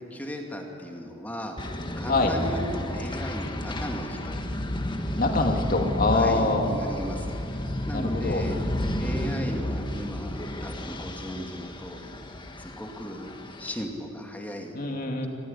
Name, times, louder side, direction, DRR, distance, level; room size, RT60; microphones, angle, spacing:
voice 1, 0.1-1.6 2.0-2.6 2.9-4.4 6.1-7.4 7.9-8.6 9.0-12.1 12.6-13.3 13.6-14.8, equal, 10° left, 1 dB, 2.3 m, -36 dB
sound 1, 1.6-13.8, left 1 dB, 25° left, 1.5 m, -32 dB
voice 2, 5.1-6.7 7.9-8.4 14.7-15.3, left 3 dB, 45° left, 2 dB, 2.3 m, -24 dB
25.0 x 16.0 x 9.9 m, 2.9 s
head